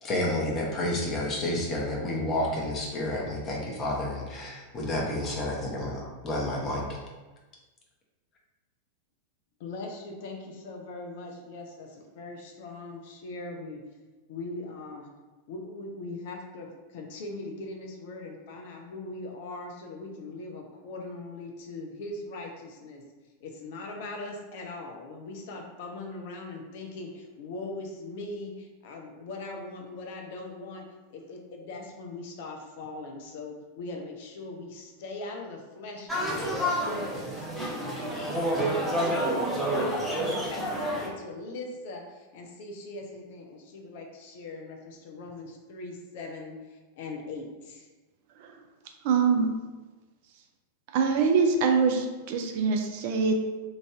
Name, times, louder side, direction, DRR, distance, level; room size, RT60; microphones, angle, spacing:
voice 1, 0.0-7.0, left 1 dB, 30° left, -2 dB, 0.9 m, -30 dB
voice 2, 9.6-13.8 14.3-15.1 15.5-23.0 23.4-47.9, left 2 dB, 50° left, 1 dB, 0.5 m, -40 dB
sound 1, 36.1-41.1, equal, 5° right, 0.7 m, -29 dB
voice 3, 49.0-49.5 50.9-53.3, right 5 dB, 50° right, 4 dB, 0.4 m, -24 dB
3.1 x 2.5 x 3.4 m, 1.2 s
figure-of-eight pair, 90°, 0 cm